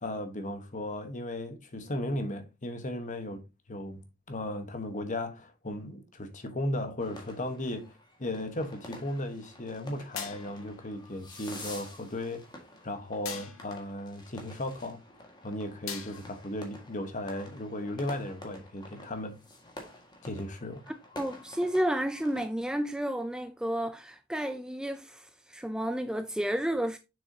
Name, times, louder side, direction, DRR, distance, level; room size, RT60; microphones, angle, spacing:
voice 1, 0.0-3.4 3.7-4.0 4.3-12.5 12.8-15.0 15.4-19.4 20.2-20.8, left 1 dB, 35° left, 1.2 m, -36 dB
sound 1, 7.0-22.5, left 1 dB, 20° left, 1.7 m, -49 dB
sound 2, 10.2-10.8 13.3-13.8 15.9-16.5, left 7 dB, 70° left, 1.5 m, -41 dB
voice 2, 21.2-27.0, right 1 dB, 5° right, 0.3 m, -31 dB
7.0 x 6.2 x 2.8 m
head